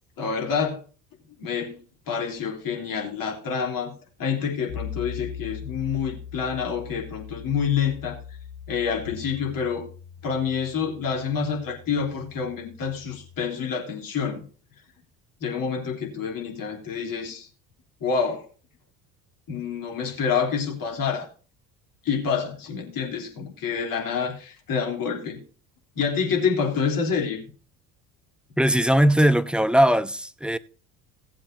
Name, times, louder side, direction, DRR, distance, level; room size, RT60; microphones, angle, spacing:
voice 1, 0.2-0.8 1.4-1.8 2.1-3.9 4.2-8.2 8.7-9.9 10.2-14.4 15.4-17.5 18.0-18.4 19.5-21.3 22.1-25.4 26.0-27.4, left 6 dB, 45° left, 3.4 m, -27 dB
sound 1, 4.7-13.4, left 8 dB, 75° left, 4.3 m, -40 dB
voice 2, 28.6-30.6, equal, ahead, 0.5 m, -19 dB
18.0 x 7.6 x 2.7 m
figure-of-eight pair, 60°, 47 cm